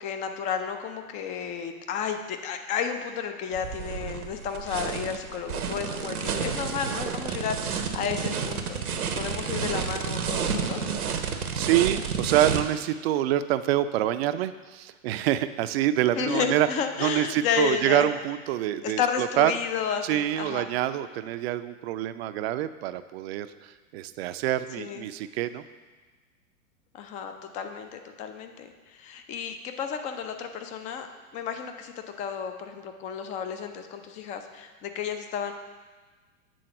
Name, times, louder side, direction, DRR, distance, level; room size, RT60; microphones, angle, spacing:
voice 1, 0.0-8.8 9.1-10.8 16.2-18.1 18.8-20.7 24.8-25.0 26.9-31.1 31.3-31.9 32.2-35.5, left 7 dB, 20° left, 7 dB, 0.3 m, -32 dB
sound 1, 3.5-12.6, right 6 dB, 85° right, 0.8 m, -30 dB
voice 2, 11.2-16.7 17.0-19.5 20.0-25.6, right 13 dB, 45° right, 12 dB, 0.4 m, -26 dB
7.7 x 4.0 x 6.4 m, 1.4 s
hypercardioid pair, 100°, 43 cm